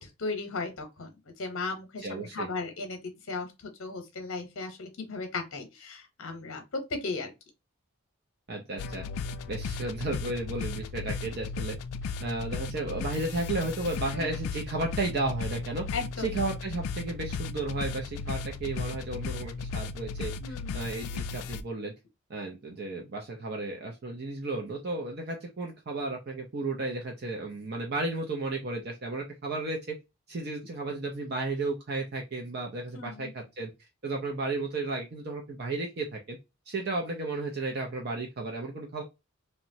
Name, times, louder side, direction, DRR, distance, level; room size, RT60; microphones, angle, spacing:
voice 1, 0.0-3.0 3.3-7.3 14.1-14.2 15.9-16.3 20.4-20.8 32.9-33.3, left 3 dB, 65° left, 0.8 m, -36 dB
voice 2, 2.0-2.5 8.5-9.0 9.5-11.8 12.0-15.9 16.2-20.3 20.7-21.9 22.3-30.0 30.3-33.7 34.0-36.4 36.7-39.0, right 2 dB, 45° right, 0.5 m, -33 dB
sound 1, 8.8-21.6, left 5 dB, 90° left, 0.3 m, -36 dB
2.9 x 2.1 x 2.6 m
head